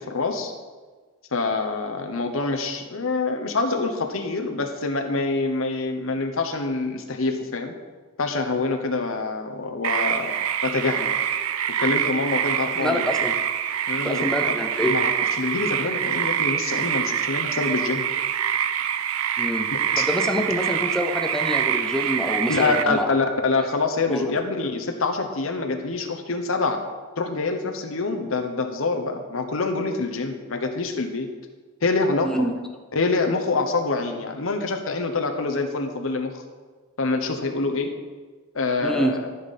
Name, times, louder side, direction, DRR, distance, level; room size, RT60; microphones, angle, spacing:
voice 1, 0.1-0.5 1.3-7.7 8.2-10.3 10.6-11.1 11.8-13.0 13.9-14.3 14.9-15.1 15.4-18.0 20.0-20.1 22.5-26.8 27.2-31.3 31.8-32.3 32.9-36.3 37.0-37.9 38.5-39.2, left 3 dB, 70° left, 4 dB, 0.9 m, -25 dB
sound 1, 9.8-22.8, right 9 dB, 80° right, 0.5 m, -25 dB
voice 2, 12.8-13.3 14.0-15.0 19.4-19.7 20.0-23.1 24.1-24.3 32.2-32.5 38.8-39.1, equal, 5° left, 3 dB, 0.6 m, -26 dB
13.5 x 5.5 x 4.2 m, 1.4 s
head